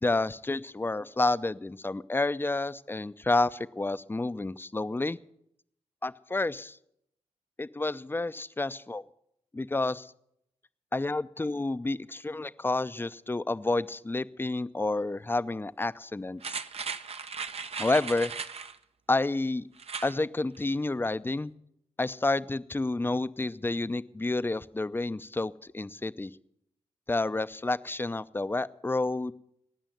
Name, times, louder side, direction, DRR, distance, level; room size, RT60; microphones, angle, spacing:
voice 1, 0.0-5.2 6.0-6.8 7.6-9.0 9.5-10.1 10.9-16.6 17.8-18.3 19.1-19.7 20.0-21.5 22.0-26.3 27.1-29.3, left 2 dB, 20° left, 15 dB, 0.6 m, -30 dB
sound 1, 16.4-18.8 19.8-20.2 20.6-20.7, right 5 dB, 55° right, 0.8 m, -37 dB
18.0 x 6.3 x 9.3 m, 0.74 s
cardioid pair, 50°, 12 cm